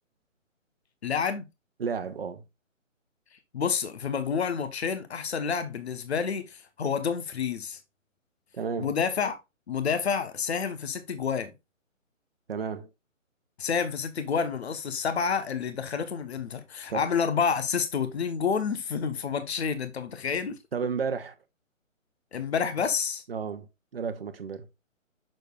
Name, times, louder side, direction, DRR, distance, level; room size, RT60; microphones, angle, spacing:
voice 1, 1.0-1.5 3.5-7.8 8.8-9.4 9.7-11.5 13.6-20.6 22.3-23.2, left 6 dB, 55° left, 1.1 m, -29 dB
voice 2, 1.8-2.4 8.5-8.9 12.5-12.9 16.9-17.0 20.7-21.3 23.3-23.7 23.9-24.7, right 6 dB, 45° right, 0.8 m, -32 dB
6.6 x 6.4 x 2.3 m
figure-of-eight pair, 145°, 40 cm